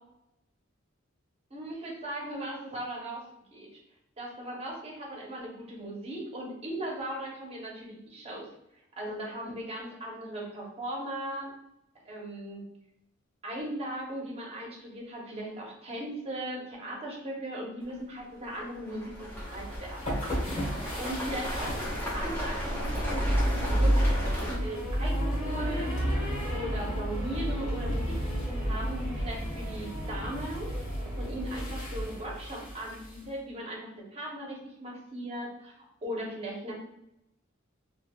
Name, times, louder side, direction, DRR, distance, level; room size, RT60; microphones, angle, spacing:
voice 1, 1.5-3.2 3.5-3.7 4.2-8.5 9.0-11.5 12.0-12.6 13.4-20.2 21.0-26.2 26.5-30.7 31.2-35.7 36.0-36.7, right 1 dB, 30° right, -2 dB, 0.8 m, -38 dB
sound 1, 17.8-17.9 18.4-24.6, equal, 10° left, 0.7 m, -35 dB
sound 2, 19.3-33.2, equal, 40° left, 1.3 m, -31 dB
3.3 x 2.6 x 2.3 m, 0.83 s
head